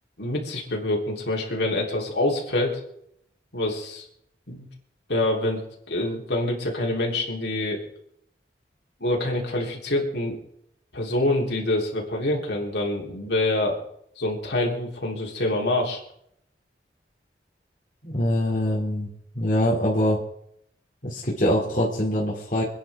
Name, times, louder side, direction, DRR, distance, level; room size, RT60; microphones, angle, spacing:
voice 1, 0.2-2.8 3.5-4.1 4.5-4.6 5.1-5.6 5.9-7.8 9.0-10.4 10.9-13.8 14.2-16.0, left 1 dB, 85° left, -1 dB, 3.6 m, -26 dB
voice 2, 18.0-19.1 19.3-20.2 21.0-22.6, equal, 45° left, -6 dB, 2.7 m, -23 dB
27.0 x 10.0 x 3.6 m, 0.73 s
head